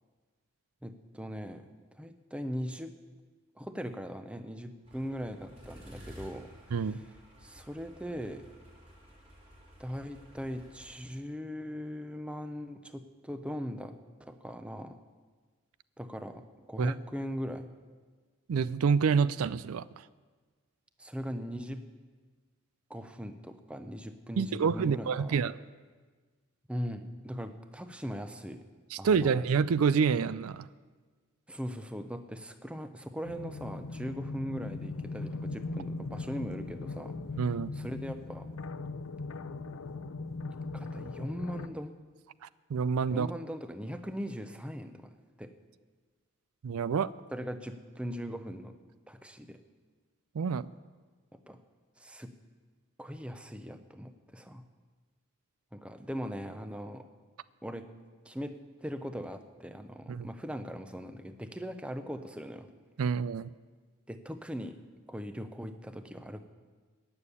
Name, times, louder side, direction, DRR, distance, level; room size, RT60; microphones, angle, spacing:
voice 1, 0.8-1.7 1.9-2.9 3.6-7.0 7.4-8.5 9.8-13.9 14.2-15.0 16.0-17.7 21.0-21.8 22.9-25.4 26.7-28.6 29.0-29.5 31.5-37.2 37.7-38.5 40.7-42.0 43.1-45.1 45.4-45.5 47.3-48.8 49.1-49.6 51.3-51.6 52.0-52.3 53.0-54.6 55.7-57.0 57.6-57.9 58.2-62.7 64.1-64.8 65.1-66.4, equal, 5° right, 8 dB, 0.6 m, -40 dB
sound 1, 4.8-11.0, equal, 30° right, 4.8 m, -53 dB
voice 2, 18.5-19.8 24.4-25.6 28.9-30.7 37.4-37.7 42.7-43.3 46.6-47.1 50.4-50.7 60.1-60.3 63.0-63.5, right 6 dB, 80° right, 18 dB, 0.4 m, -27 dB
sound 2, 33.2-41.7, left 3 dB, 75° left, 0.6 m, -39 dB
15.0 x 7.1 x 9.8 m, 1.4 s
head